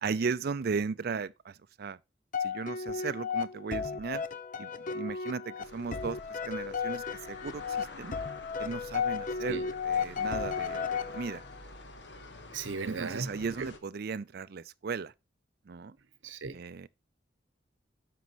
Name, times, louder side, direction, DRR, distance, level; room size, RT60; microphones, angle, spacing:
voice 1, 0.0-2.0 2.4-4.2 4.6-8.1 8.6-11.4 12.8-15.1 15.7-16.0 16.5-16.9, right 5 dB, 55° right, 0.4 m, -36 dB
sound 1, 2.3-11.6, left 6 dB, 45° left, 0.6 m, -34 dB
sound 2, 5.6-13.8, left 2 dB, 65° left, 1.4 m, -48 dB
voice 2, 12.5-13.3 13.6-13.7 16.2-16.6, right 4 dB, 85° right, 0.8 m, -36 dB
9.5 x 6.1 x 3.0 m
head